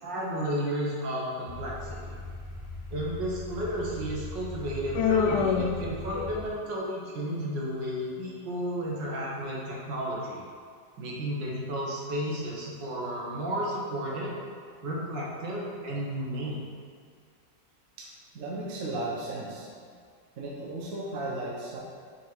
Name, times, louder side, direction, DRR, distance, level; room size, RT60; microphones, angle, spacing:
voice 1, 0.0-2.2 2.9-10.4 11.0-14.4 14.8-16.6, equal, 75° right, -4 dB, 1.8 m, -33 dB
sound 1, 1.5-6.4, left 2 dB, 55° left, 2.2 m, -40 dB
Human voice, 4.9-6.7, left 6 dB, 70° left, 1.0 m, -27 dB
voice 2, 18.3-19.9 20.4-21.8, right 2 dB, 55° right, -4 dB, 1.3 m, -35 dB
6.3 x 3.6 x 4.5 m, 2.1 s
omnidirectional pair, 2.0 m